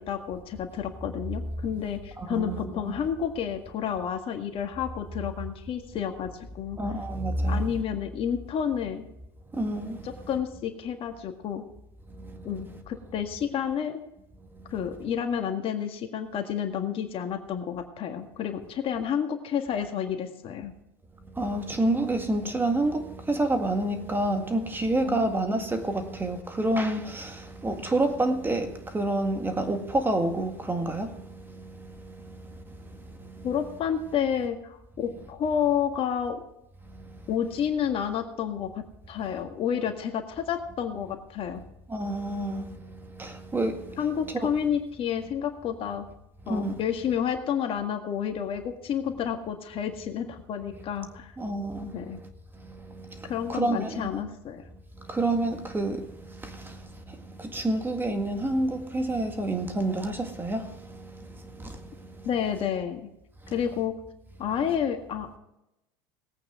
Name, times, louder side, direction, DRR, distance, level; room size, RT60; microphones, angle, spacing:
voice 1, 0.0-6.8 7.5-9.0 10.3-11.6 12.4-14.0 14.7-20.7 25.0-25.2 33.4-36.4 37.3-38.7 39.1-41.6 44.0-46.0 46.5-51.3 51.9-52.2 53.3-54.6 62.2-63.0 63.5-63.9 64.4-65.4, left 8 dB, 45° left, 1.7 m, -30 dB
voice 2, 2.2-3.0 6.8-7.8 9.5-10.3 12.2-12.8 14.5-15.0 21.3-33.5 36.9-37.3 41.6-44.1 44.3-44.5 46.4-46.8 50.8-50.9 51.4-52.3 52.5-54.2 55.0-62.3 63.4-63.5, right 2 dB, 15° right, 1.8 m, -29 dB
19.5 x 8.7 x 3.7 m
hypercardioid pair, 90°, 13 cm